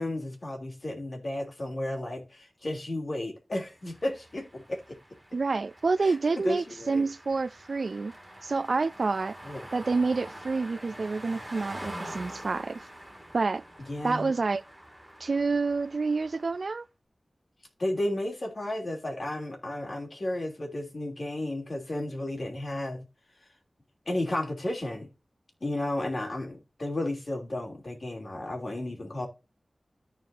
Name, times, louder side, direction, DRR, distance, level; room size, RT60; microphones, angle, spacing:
voice 1, 0.0-5.0 6.0-6.1 6.4-7.0 9.4-9.7 13.8-14.3 17.8-23.1 24.1-25.1 25.6-29.3, left 1 dB, 50° left, 3.1 m, -33 dB
sound 1, 3.8-16.8, right 1 dB, 10° right, 3.2 m, -46 dB
voice 2, 5.3-8.1 8.4-9.4 9.7-12.8 13.3-13.6 14.0-14.6 15.2-16.9, right 4 dB, 70° right, 0.3 m, -28 dB
13.5 x 4.6 x 2.7 m
wide cardioid pair, 85°, 0 cm